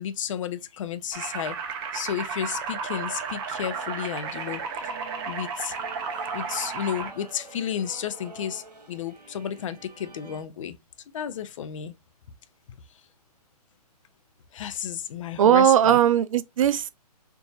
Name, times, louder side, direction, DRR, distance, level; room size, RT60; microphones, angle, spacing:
voice 1, 0.0-1.6 1.9-4.6 5.3-5.8 6.3-10.8 11.1-11.9 14.5-16.0, left 9 dB, 50° left, 0.6 m, -32 dB
sound 1, 1.1-7.1, right 5 dB, 35° right, 0.9 m, -33 dB
sound 2, 3.5-10.4, right 3 dB, 80° right, 1.4 m, -47 dB
voice 2, 15.4-16.9, right 10 dB, 55° right, 0.4 m, -19 dB
4.4 x 2.7 x 2.7 m
hypercardioid pair, 135°, 20 cm